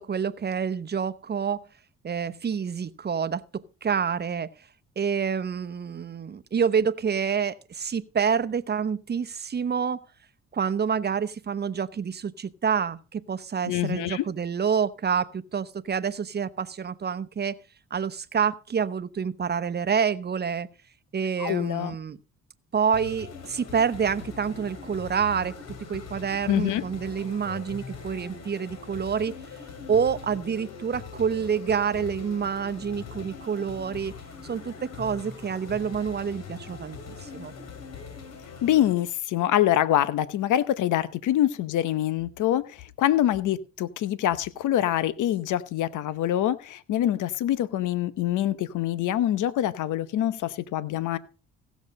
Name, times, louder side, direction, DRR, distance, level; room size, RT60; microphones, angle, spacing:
voice 1, 0.0-1.7 2.0-4.5 5.0-10.0 10.5-17.6 17.9-20.7 21.1-22.2 22.7-25.5 25.9-29.3 29.9-34.1 34.4-37.5, right 7 dB, 35° right, 0.9 m, -28 dB
voice 2, 13.6-14.3 21.4-21.9 26.5-26.8 38.6-51.2, left 12 dB, 80° left, 0.9 m, -25 dB
sound 1, 22.9-38.9, left 5 dB, 55° left, 2.8 m, -42 dB
16.0 x 7.2 x 5.3 m
cardioid pair, 90°, 30 cm